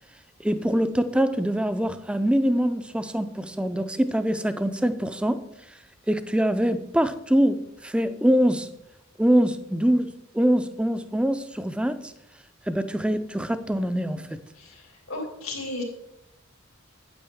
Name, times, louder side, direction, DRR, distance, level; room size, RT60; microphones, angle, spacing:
voice 1, 0.4-5.4 5.7-5.8 6.1-8.7 9.2-12.1 12.7-14.4, equal, 5° right, 0.4 m, -24 dB
voice 2, 15.1-15.8, left 2 dB, 90° left, 2.7 m, -33 dB
8.9 x 8.6 x 3.5 m
head